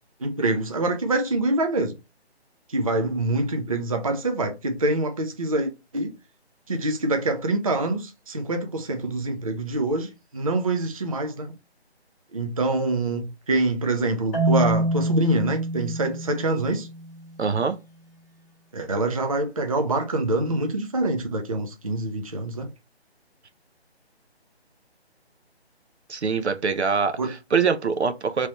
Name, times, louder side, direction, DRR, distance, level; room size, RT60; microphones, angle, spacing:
voice 1, 0.2-1.9 2.7-6.1 6.7-11.5 12.3-16.9 18.7-22.7 27.2-27.3, right 2 dB, 35° right, 0.4 m, -25 dB
Marimba xylophone, 14.3-17.3, right 1 dB, 15° left, 1.3 m, -26 dB
voice 2, 17.4-17.8 26.1-28.5, right 5 dB, 85° right, 0.7 m, -24 dB
3.0 x 3.0 x 2.9 m
figure-of-eight pair, 160°, 33 cm